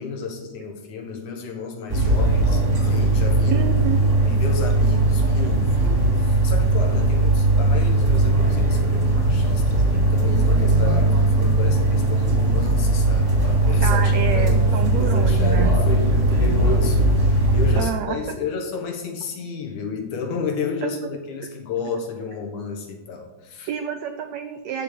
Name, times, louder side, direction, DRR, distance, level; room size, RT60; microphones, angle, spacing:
voice 1, 0.0-3.7 3.9-23.7, left 5 dB, 60° left, 3 dB, 2.7 m, -32 dB
sound 1, 1.9-17.8, right 2 dB, 20° right, 2.5 m, -19 dB
voice 2, 3.5-4.0 13.8-15.7 17.8-18.2 20.8-20.9 23.7-24.8, right 8 dB, 85° right, 7 dB, 1.5 m, -28 dB
13.0 x 5.5 x 8.4 m, 1.2 s
omnidirectional pair, 4.1 m